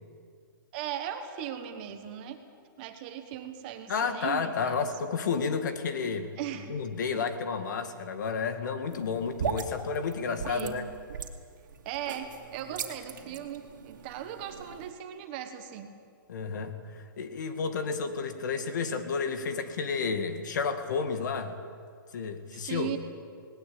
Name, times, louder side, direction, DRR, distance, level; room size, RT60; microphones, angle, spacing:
voice 1, 0.7-2.4 2.8-4.9 6.4-6.8 7.1-7.3 10.4-10.8 11.8-15.9 22.6-23.0, right 10 dB, 25° right, 7 dB, 1.4 m, -38 dB
voice 2, 3.9-6.3 6.7-10.8 16.3-16.7 17.2-21.6 22.1-22.9, left 5 dB, 55° left, 8 dB, 2.1 m, -31 dB
sound 1, 8.9-14.9, right 7 dB, 60° right, 2.5 m, -39 dB
19.5 x 18.5 x 8.9 m, 2.1 s
hypercardioid pair, 170°, 12 cm